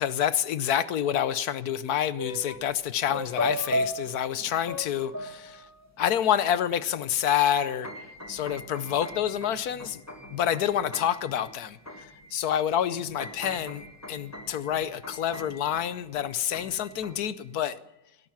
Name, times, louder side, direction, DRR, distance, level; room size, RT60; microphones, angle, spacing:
voice 1, 0.0-5.6 6.0-7.9 8.3-10.0 10.3-11.8 12.3-17.8, left 10 dB, 65° left, 15 dB, 1.1 m, -28 dB
sound 1, 2.2-2.8 3.1-6.0 6.8-6.9 7.2-12.6 12.9-17.4, equal, 10° left, 1.3 m, -37 dB
17.5 x 13.5 x 5.9 m, 0.90 s
omnidirectional pair, 2.0 m